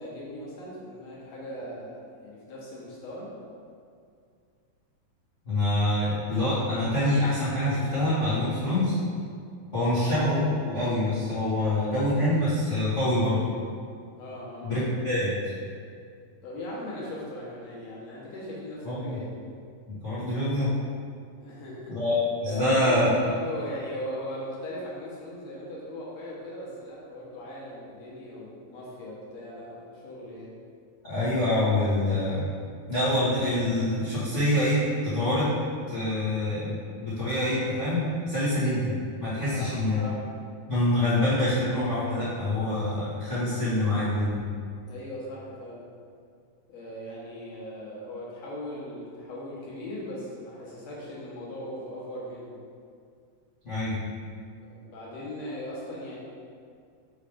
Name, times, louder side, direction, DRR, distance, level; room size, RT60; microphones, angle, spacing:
voice 1, 0.0-3.3 9.7-10.0 14.2-14.7 16.4-19.3 21.4-22.0 22.5-30.5 39.5-40.2 44.8-45.9 46.7-52.6 54.6-56.2, left 1 dB, 60° left, -6 dB, 1.9 m, -39 dB
voice 2, 5.4-9.0 9.7-10.4 10.6-13.4 14.6-15.5 18.8-19.2 19.9-20.7 21.9-23.1 31.0-32.5 32.9-35.5 35.9-40.0 40.7-44.3 53.6-54.0, left 1 dB, 75° left, -13 dB, 0.6 m, -26 dB
6.9 x 3.2 x 5.0 m, 2.3 s
omnidirectional pair, 4.2 m